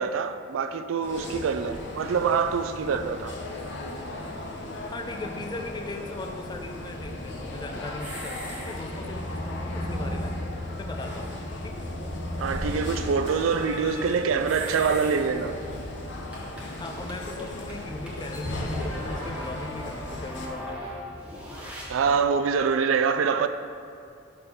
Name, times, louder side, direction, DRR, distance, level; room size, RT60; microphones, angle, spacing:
voice 1, 0.0-3.3 12.4-15.5 21.9-23.5, right 6 dB, 75° right, 0.4 m, -25 dB
sound 1, 1.0-20.5, left 1 dB, 60° left, 0.8 m, -37 dB
voice 2, 4.9-10.4 10.8-11.9 16.8-21.0 22.7-22.8, left 2 dB, 20° left, 0.4 m, -38 dB
sound 2, 6.4-22.2, left 1 dB, 5° right, 1.2 m, -38 dB
6.6 x 4.3 x 5.5 m
head